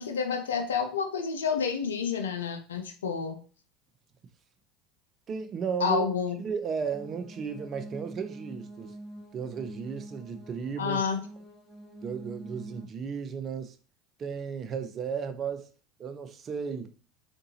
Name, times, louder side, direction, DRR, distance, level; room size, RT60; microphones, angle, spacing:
voice 1, 0.0-3.4 5.8-6.4 10.8-11.2, left 6 dB, 90° left, 0.5 m, -29 dB
voice 2, 5.3-6.0 6.4-9.0 9.3-11.0 12.0-13.8 14.2-15.7 16.0-16.9, right 6 dB, 40° right, 0.5 m, -34 dB
sound 1, 6.9-12.8, right 1 dB, 20° left, 1.6 m, -45 dB
3.7 x 2.7 x 2.7 m
hypercardioid pair, 80°, 0 cm